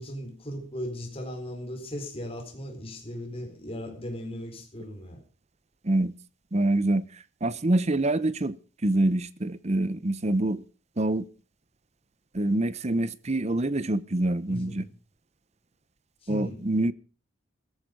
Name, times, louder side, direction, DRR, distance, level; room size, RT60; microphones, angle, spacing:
voice 1, 0.0-5.2 14.5-14.9 16.2-16.6, equal, 30° left, 4.5 m, -37 dB
voice 2, 6.5-7.0 7.4-8.6 8.8-10.6 11.0-11.2 12.3-14.8 16.3-16.9, right 1 dB, 35° right, 0.8 m, -25 dB
15.0 x 14.0 x 5.3 m
head